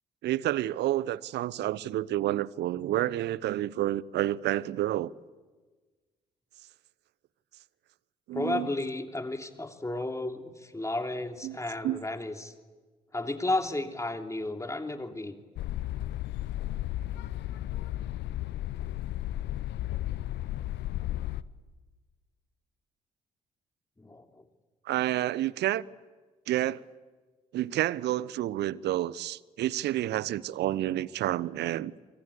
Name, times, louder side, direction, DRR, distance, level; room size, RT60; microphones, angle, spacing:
voice 1, 0.2-5.1 8.3-8.7 11.4-11.6 11.8-12.0 24.8-25.8 26.5-26.8 27.5-31.9, right 14 dB, 55° right, 0.8 m, -29 dB
voice 2, 8.3-12.5 13.1-15.4 24.0-24.4, left 2 dB, 15° left, 3.2 m, -33 dB
sound 1, 15.6-21.4, left 14 dB, 60° left, 0.9 m, -34 dB
28.0 x 25.0 x 8.4 m
figure-of-eight pair, 45°, 20 cm